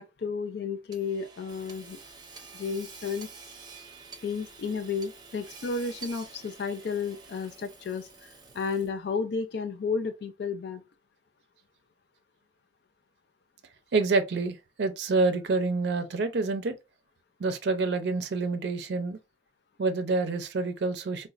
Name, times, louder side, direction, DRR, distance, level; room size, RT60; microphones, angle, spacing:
voice 1, 0.0-2.0 2.5-3.3 4.2-10.8, left 5 dB, 65° left, 0.4 m, -32 dB
Hammer / Sawing, 0.9-9.1, right 4 dB, 25° right, 0.6 m, -48 dB
voice 2, 13.9-16.7 17.4-19.2 19.8-21.3, right 3 dB, 65° right, 0.5 m, -27 dB
4.0 x 2.1 x 2.4 m
head